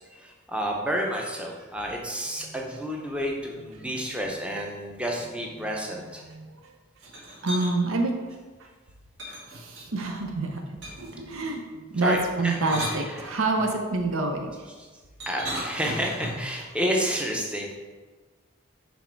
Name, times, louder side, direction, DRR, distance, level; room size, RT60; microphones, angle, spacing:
voice 1, 0.0-6.2 12.0-13.3 14.8-14.9 15.3-17.7, equal, 5° right, 0 dB, 0.6 m, -30 dB
voice 2, 5.6-6.7 7.4-8.1 8.6-8.7 9.5-14.7, right 2 dB, 85° right, 3 dB, 0.7 m, -28 dB
sound 1, 7.0-7.7 9.2-10.1 10.8-11.2 12.3-13.7 15.2-16.5, equal, 55° right, 1.9 m, -36 dB
6.3 x 3.5 x 4.5 m, 1.4 s
head